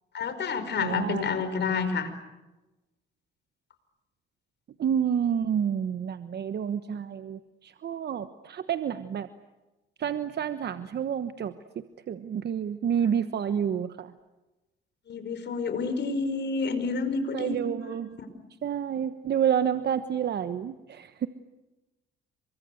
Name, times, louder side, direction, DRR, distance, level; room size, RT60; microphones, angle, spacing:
voice 1, 0.1-2.1 15.1-17.6 18.2-18.3, left 4 dB, 60° left, 10 dB, 5.2 m, -29 dB
voice 2, 0.8-1.2 4.8-9.3 10.0-14.1 17.3-18.2 18.6-21.3, right 8 dB, 55° right, 11 dB, 1.2 m, -29 dB
28.5 x 24.0 x 8.0 m, 1.1 s
cardioid pair, 90°, 20 cm